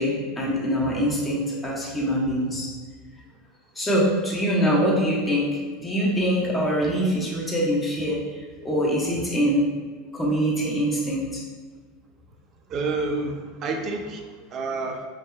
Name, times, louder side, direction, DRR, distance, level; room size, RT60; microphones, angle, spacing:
voice 1, 0.0-2.7 3.7-8.2 8.6-9.7 10.1-11.4, equal, 15° left, -5 dB, 1.1 m, -24 dB
voice 2, 12.7-15.1, right 3 dB, 40° right, 3 dB, 0.5 m, -29 dB
5.4 x 2.7 x 2.3 m, 1.5 s
hypercardioid pair, 95°, 0 cm